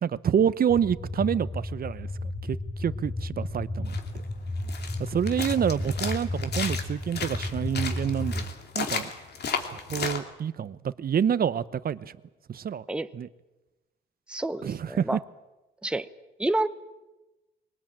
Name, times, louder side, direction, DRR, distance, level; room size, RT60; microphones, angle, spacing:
voice 1, 0.0-4.0 5.0-8.5 8.7-9.1 9.6-12.1 12.5-12.8 13.1-13.3 14.6-15.2, right 8 dB, 50° right, 0.9 m, -28 dB
sound 1, 0.7-8.5, left 2 dB, 40° left, 4.5 m, -33 dB
sound 2, 3.9-10.2, left 6 dB, 55° left, 2.9 m, -34 dB
voice 2, 14.3-15.2 15.8-16.1 16.4-16.7, right 2 dB, 5° right, 0.9 m, -28 dB
22.0 x 19.5 x 8.9 m
cardioid pair, 90°, 20 cm